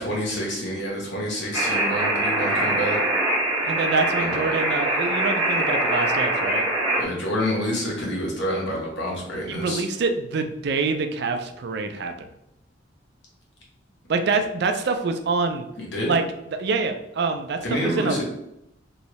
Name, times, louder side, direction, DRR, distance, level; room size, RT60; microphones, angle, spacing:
voice 1, 0.0-3.0 4.2-4.6 7.0-9.8 15.8-16.1 17.6-18.2, equal, 70° left, -3 dB, 1.2 m, -28 dB
sound 1, 1.5-7.0, right 1 dB, 20° right, 1.0 m, -23 dB
voice 2, 3.7-6.7 9.5-12.3 14.1-15.7 16.1-16.2 16.6-18.2, right 4 dB, 60° right, 7 dB, 0.4 m, -25 dB
3.1 x 2.7 x 3.0 m, 0.82 s
head